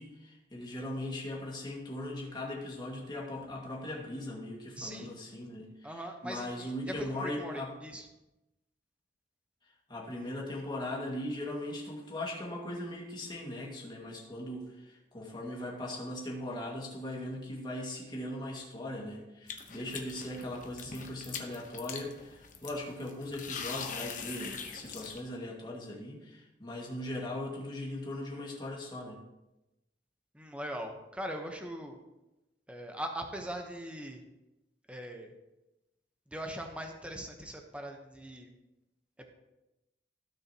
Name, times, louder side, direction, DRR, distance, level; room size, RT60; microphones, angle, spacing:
voice 1, 0.0-7.7 9.6-29.2, left 1 dB, 25° left, -3 dB, 2.0 m, -39 dB
voice 2, 4.7-5.1 5.8-8.1 30.3-32.0 32.7-34.2 34.9-35.3 36.3-38.5, right 1 dB, 5° right, 3 dB, 1.0 m, -40 dB
sound 1, 19.5-25.2, left 6 dB, 45° left, 1.0 m, -42 dB
16.0 x 6.5 x 2.9 m, 0.98 s
head